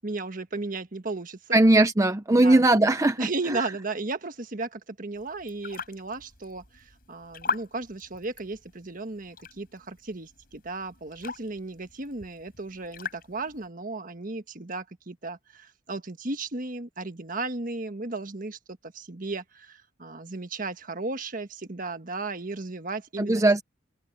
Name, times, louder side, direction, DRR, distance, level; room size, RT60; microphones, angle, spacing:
voice 1, 0.0-1.6 2.3-2.6 3.2-23.4, right 3 dB, 45° right, 1.5 m, -35 dB
voice 2, 1.5-3.2 23.2-23.6, right 2 dB, 15° right, 0.6 m, -19 dB
sound 1, 5.2-13.7, left 4 dB, 50° left, 7.7 m, -40 dB
head